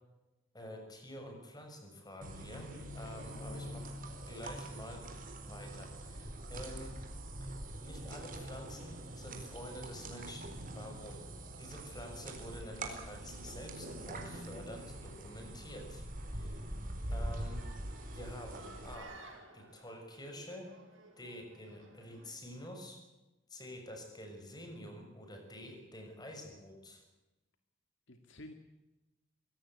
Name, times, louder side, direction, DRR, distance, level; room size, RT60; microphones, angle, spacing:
voice 1, 0.5-3.9 4.3-5.1 5.3-6.9 7.4-7.5 7.8-11.3 11.6-16.0 16.3-16.6 17.1-17.6 18.1-19.2 19.5-20.7 21.2-23.0 23.5-27.0, left 1 dB, 20° left, 4 dB, 6.5 m, -48 dB
sound 1, 2.2-19.0, right 1 dB, 45° right, 4.2 m, -44 dB
voice 2, 2.5-3.7 28.1-28.5, left 1 dB, 65° left, 6 dB, 2.1 m, -53 dB
sound 2, 17.2-22.3, right 2 dB, 70° right, 7.0 m, -55 dB
24.0 x 17.5 x 8.3 m, 1.0 s
head